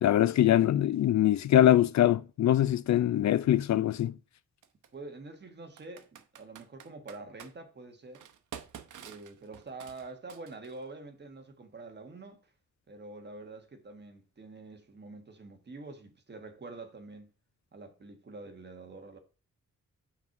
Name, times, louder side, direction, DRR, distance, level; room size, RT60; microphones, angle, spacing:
voice 1, 0.0-4.1, left 12 dB, 65° left, 0.4 m, -23 dB
Computer keyboard, 3.0-3.1 4.6-4.9 5.8-7.5 8.1-10.8, right 8 dB, 90° right, 0.8 m, -48 dB
voice 2, 4.9-8.2 9.0-12.5 12.9-17.3 17.7-19.2, right 3 dB, 35° right, 1.5 m, -46 dB
5.7 x 4.6 x 5.9 m
wide cardioid pair, 130°, 30 cm